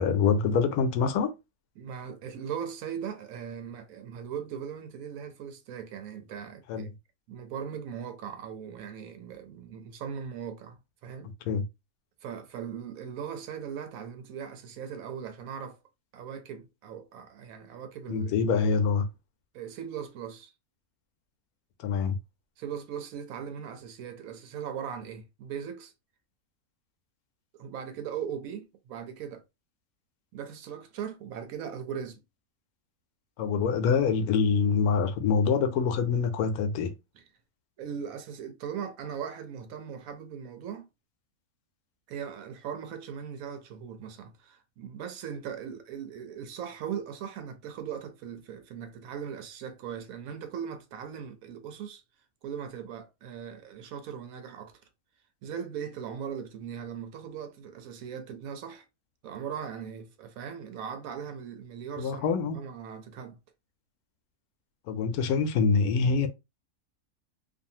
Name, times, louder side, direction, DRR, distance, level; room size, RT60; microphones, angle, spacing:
voice 1, 0.0-1.3 6.7-6.8 11.5-11.6 18.1-19.1 21.8-22.2 33.4-36.9 62.0-62.6 64.9-66.3, left 5 dB, 80° left, 1.1 m, -25 dB
voice 2, 1.8-6.9 7.3-11.3 12.2-15.8 16.1-18.5 19.5-20.5 22.6-25.9 27.5-29.4 30.3-32.2 37.1-37.2 37.8-40.9 42.1-52.0 52.4-54.8 55.4-58.8 59.2-63.4, right 8 dB, 75° right, 1.0 m, -39 dB
2.6 x 2.4 x 2.7 m
omnidirectional pair, 1.5 m